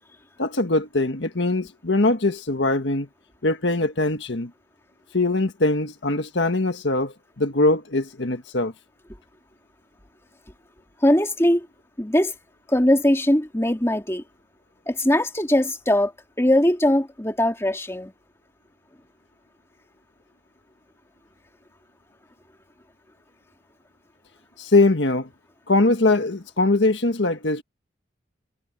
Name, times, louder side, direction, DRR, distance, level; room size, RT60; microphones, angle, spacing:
voice 1, 0.4-3.1 3.4-4.5 5.1-8.7 24.6-25.3 25.7-27.6, left 2 dB, 70° left, 1.7 m, -22 dB
voice 2, 11.0-11.7 12.0-12.3 12.7-14.2 14.9-16.1 16.4-18.1, left 1 dB, 15° left, 2.3 m, -20 dB
head